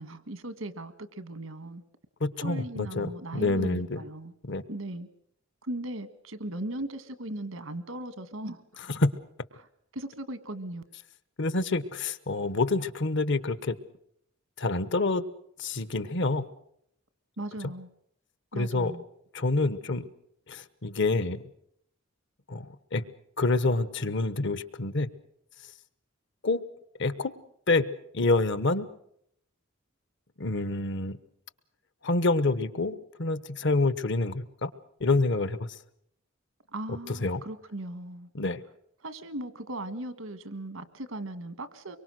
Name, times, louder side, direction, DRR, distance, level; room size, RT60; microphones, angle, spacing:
voice 1, 0.0-1.8 2.4-4.3 4.7-5.1 5.6-8.6 9.6-9.7 9.9-10.8 17.4-17.9 18.5-19.0 36.7-38.3 39.0-42.0, right 1 dB, 85° right, 12 dB, 1.7 m, -38 dB
voice 2, 2.2-4.0 4.4-4.6 8.9-9.1 11.4-13.8 14.6-15.3 15.6-16.5 18.5-18.9 19.3-20.1 20.5-21.4 22.5-23.1 23.4-25.1 26.4-26.6 27.0-27.3 27.7-28.9 30.4-31.2 32.0-34.7 35.0-35.7 36.9-37.4 38.3-38.6, left 2 dB, 60° left, 15 dB, 1.1 m, -27 dB
24.5 x 23.5 x 6.3 m, 0.71 s
head